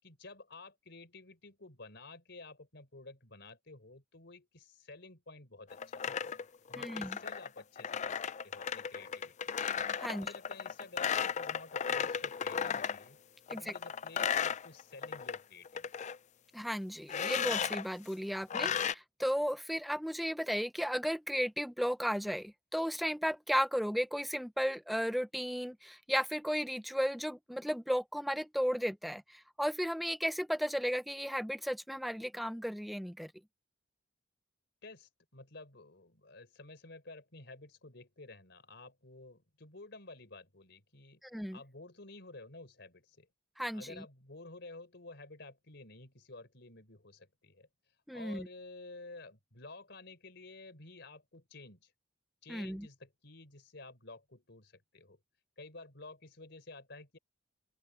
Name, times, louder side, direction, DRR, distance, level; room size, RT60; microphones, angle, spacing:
voice 1, 0.0-6.1 6.7-9.7 10.1-13.2 13.5-15.9 34.8-41.2 41.5-43.3 43.7-47.7 48.1-51.9 52.4-55.2 55.6-57.2, left 3 dB, 65° left, 4.1 m, -52 dB
sound 1, 5.7-13.0 13.5-15.4 15.6-16.2 17.1-17.8 18.5-18.9, left 7 dB, 40° left, 0.4 m, -35 dB
voice 2, 6.7-7.2 10.0-10.3 13.5-13.7 16.5-33.3 41.2-41.6 43.6-44.0 48.1-48.5 52.5-52.9, equal, ahead, 0.7 m, -34 dB
open air
head